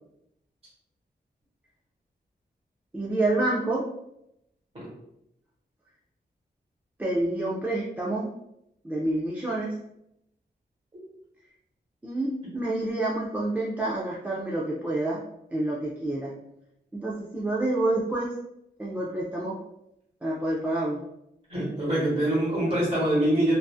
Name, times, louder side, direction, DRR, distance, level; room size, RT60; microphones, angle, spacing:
voice 1, 2.9-3.9 7.0-8.3 8.8-9.8 12.0-15.2 15.5-16.3 16.9-18.3 18.8-19.6 20.2-21.0, right 2 dB, 10° right, -6 dB, 0.3 m, -28 dB
voice 2, 21.5-23.5, right 1 dB, 35° right, -7 dB, 1.3 m, -24 dB
2.5 x 2.4 x 2.3 m, 0.80 s
wide cardioid pair, 150°, 17 cm